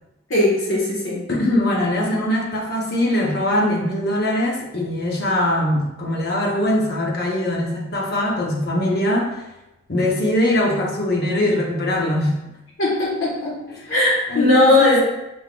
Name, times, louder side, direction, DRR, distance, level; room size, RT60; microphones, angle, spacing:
voice 1, 0.3-1.2 12.8-13.5 13.9-15.0, left 2 dB, 70° left, -5 dB, 1.5 m, -18 dB
voice 2, 1.3-9.4 9.9-12.4 14.3-15.0, left 1 dB, 50° left, -2 dB, 0.9 m, -21 dB
5.3 x 3.5 x 2.4 m, 0.96 s
head